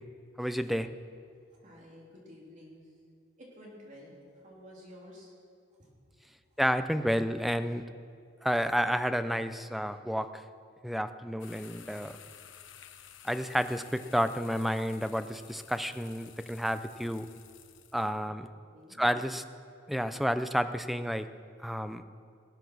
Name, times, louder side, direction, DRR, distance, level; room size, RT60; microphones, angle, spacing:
voice 1, 0.4-0.9 6.6-7.8 8.4-10.4 10.8-12.2 13.2-17.3 17.9-18.5 19.0-19.4 19.9-21.3 21.6-22.0, equal, ahead, 10 dB, 0.4 m, -30 dB
voice 2, 1.6-2.9 3.4-5.3 5.8-5.9 6.5-6.6 18.7-19.0, left 1 dB, 40° right, -4 dB, 3.4 m, -51 dB
sound 1, 11.4-18.2, left 9 dB, 70° left, 0.8 m, -53 dB
19.0 x 8.4 x 6.1 m, 2.4 s
head